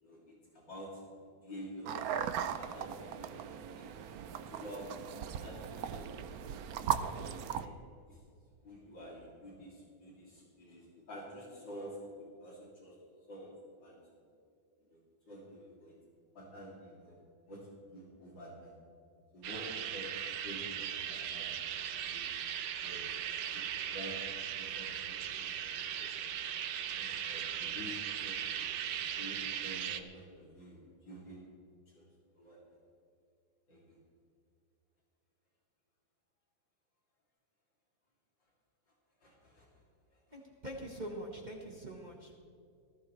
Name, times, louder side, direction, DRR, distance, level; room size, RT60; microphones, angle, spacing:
voice 1, 0.5-1.0 1.4-1.9 2.6-3.5 3.7-4.2 4.5-4.9 5.2-6.3 7.1-7.7 8.1-8.2 8.6-13.0 13.3-13.5 13.8-14.0 14.9-15.0 15.3-15.9 16.3-17.2 17.5-18.7 19.3-21.6 22.1-22.2 22.8-23.0 23.5-26.3 26.9-28.8 29.1-31.4 31.9-32.0 32.4-32.8 33.7-34.0 39.2-39.7 40.1-40.2, equal, 70° left, -5 dB, 3.5 m, -49 dB
sound 1, 1.9-7.7, right 8 dB, 65° right, 1.0 m, -38 dB
sound 2, 19.4-30.0, right 9 dB, 80° right, 1.5 m, -38 dB
voice 2, 40.3-42.4, right 1 dB, 25° right, 0 dB, 1.4 m, -44 dB
19.0 x 15.5 x 3.2 m, 2.5 s
omnidirectional pair, 2.0 m